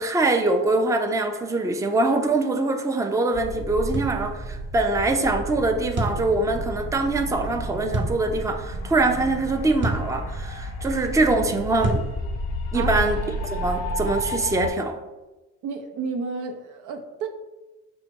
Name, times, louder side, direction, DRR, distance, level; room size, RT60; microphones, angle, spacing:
voice 1, 0.0-12.0 12.7-15.0, right 2 dB, 10° right, 0.4 m, -23 dB
sound 1, 3.3-14.3, right 2 dB, 70° right, 0.9 m, -34 dB
sound 2, 3.9-4.2 6.0-6.2 7.9-8.2 9.8-10.1 11.8-12.1, right 1 dB, 40° right, 0.8 m, -26 dB
sound 3, 6.2-14.7, left 2 dB, 85° left, 0.5 m, -33 dB
voice 2, 15.6-17.3, right 4 dB, 90° right, 0.6 m, -31 dB
5.5 x 2.1 x 4.5 m
cardioid pair, 90°, 30 cm